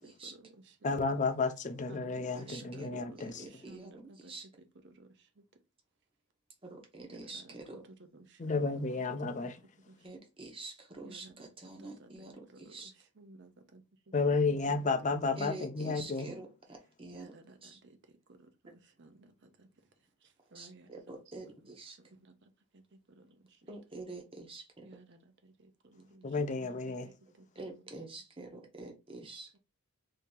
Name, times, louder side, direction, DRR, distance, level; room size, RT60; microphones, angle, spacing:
voice 1, 0.0-0.9 1.9-5.4 7.0-8.8 9.2-9.5 9.9-10.1 11.0-14.6 17.1-19.9 20.2-23.7 24.8-27.8 29.5-29.6, right 2 dB, 50° right, 0.7 m, -57 dB
voice 2, 0.8-3.5 8.4-9.6 14.1-16.3 26.2-27.1, left 4 dB, 35° left, 0.4 m, -32 dB
voice 3, 2.4-4.5 6.6-7.8 10.0-12.9 15.4-17.3 17.6-17.8 20.5-22.0 23.7-24.9 27.6-29.5, right 2 dB, 25° right, 0.8 m, -47 dB
2.8 x 2.8 x 3.7 m
head